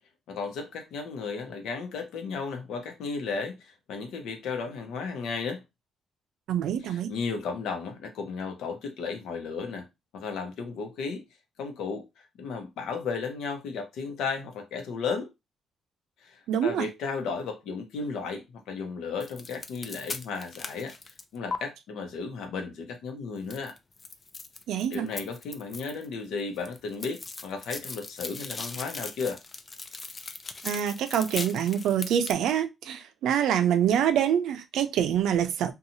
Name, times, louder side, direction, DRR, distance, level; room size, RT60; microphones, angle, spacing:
voice 1, 0.3-5.6 6.8-9.9 10.1-11.2 11.6-12.1 12.4-15.3 16.2-20.9 21.3-23.7 24.9-29.4, left 5 dB, 90° left, 0.8 m, -34 dB
voice 2, 6.5-7.1 16.5-16.9 24.7-25.1 30.6-35.7, right 9 dB, 85° right, 0.4 m, -26 dB
sound 1, 19.2-21.6 23.5-26.1 26.4-32.3, left 3 dB, 30° left, 0.4 m, -39 dB
2.7 x 2.3 x 2.7 m
cardioid pair, 115°, 0 cm